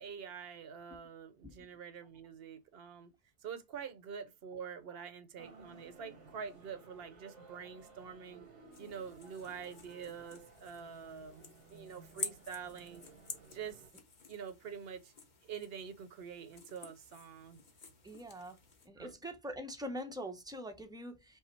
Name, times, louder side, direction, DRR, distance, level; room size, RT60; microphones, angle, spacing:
voice 1, 0.0-3.1 3.4-8.5 8.8-13.0 13.5-13.8 14.3-15.1 15.5-17.6 19.0-19.1, right 7 dB, 60° right, 0.9 m, -46 dB
sound 1, 5.4-13.9, right 4 dB, 90° right, 1.4 m, -58 dB
sound 2, 8.7-18.9, left 4 dB, 45° left, 1.0 m, -50 dB
voice 2, 18.0-18.6 18.8-21.4, equal, 5° right, 0.5 m, -44 dB
5.4 x 2.0 x 4.3 m
omnidirectional pair, 1.2 m